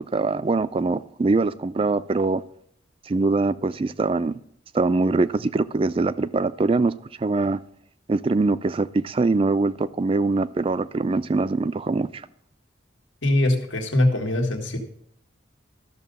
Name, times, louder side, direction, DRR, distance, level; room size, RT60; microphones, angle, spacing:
voice 1, 0.0-2.4 3.1-4.3 4.7-6.9 7.2-7.6 8.1-12.1, right 3 dB, 30° right, 0.3 m, -23 dB
voice 2, 13.2-14.8, left 1 dB, 85° left, 1.7 m, -22 dB
13.0 x 6.7 x 5.4 m
head